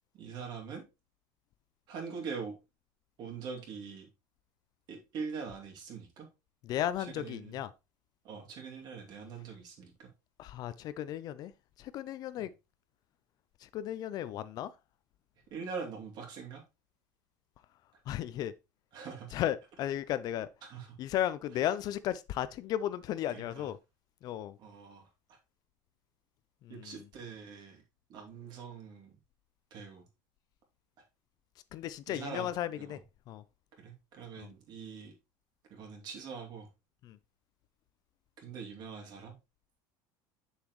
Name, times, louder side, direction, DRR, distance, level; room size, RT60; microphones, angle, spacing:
voice 1, 0.1-0.8 1.9-2.6 3.2-4.1 4.9-6.3 7.1-7.6 8.2-10.1 12.4-12.5 15.5-16.6 18.9-19.3 20.6-20.9 23.3-23.7 24.6-25.0 25.3-25.4 26.7-27.8 28.1-29.2 29.7-30.0 32.1-32.5 32.7-33.0 33.8-35.1 35.7-36.7 38.4-39.4, right 5 dB, 45° right, 2.6 m, -43 dB
voice 2, 6.6-7.7 10.4-11.5 11.8-12.5 13.6-14.7 18.1-18.5 19.3-20.5 21.0-23.8 24.2-24.6 26.6-27.1 31.7-33.0 33.3-33.4 34.4-34.5 37.0-37.2, left 11 dB, 45° left, 0.5 m, -35 dB
7.2 x 7.0 x 3.1 m
cardioid pair, 150°, 10 cm